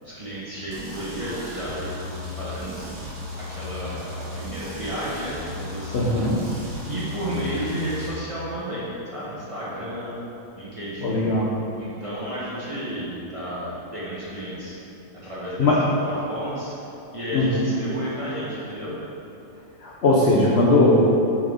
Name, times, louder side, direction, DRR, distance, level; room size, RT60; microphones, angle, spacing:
voice 1, 0.0-2.8 3.4-10.2 10.6-11.3 11.8-14.8 15.1-15.7 16.0-16.7 17.1-19.0, equal, 25° right, -10 dB, 1.0 m, -32 dB
sound 1, 0.7-8.1, left 2 dB, 50° right, 1.3 m, -36 dB
voice 2, 5.9-6.4 11.0-11.5 15.6-15.8 17.3-17.7 19.8-21.0, left 2 dB, 60° left, -5 dB, 0.6 m, -19 dB
6.2 x 4.7 x 3.6 m, 2.8 s
omnidirectional pair, 1.9 m